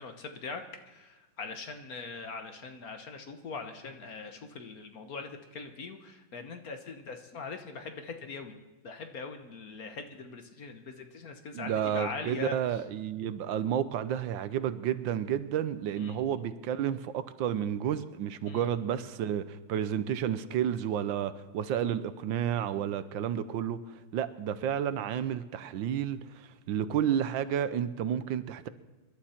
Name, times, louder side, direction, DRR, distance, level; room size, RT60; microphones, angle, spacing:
voice 1, 0.0-8.5 8.8-12.5 16.0-16.2 18.5-18.7, left 4 dB, 50° left, 6 dB, 1.5 m, -41 dB
voice 2, 11.5-23.8 24.1-28.7, right 9 dB, 75° right, 13 dB, 1.4 m, -31 dB
26.0 x 12.0 x 4.3 m, 1.2 s
omnidirectional pair, 2.1 m